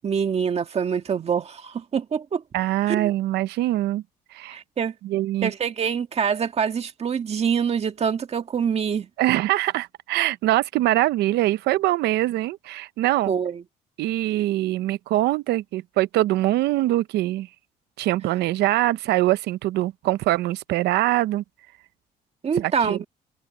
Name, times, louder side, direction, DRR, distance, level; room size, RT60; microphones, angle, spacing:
voice 1, 0.0-2.4 2.9-3.1 4.5-4.9 5.4-9.1 13.3-13.6 22.4-23.0, right 7 dB, 40° right, 1.7 m, -25 dB
voice 2, 2.5-4.0 4.3-4.6 5.0-5.5 9.2-13.3 14.0-17.5 18.0-21.4 22.6-23.0, right 16 dB, 80° right, 0.8 m, -23 dB
cardioid pair, 110°, 17 cm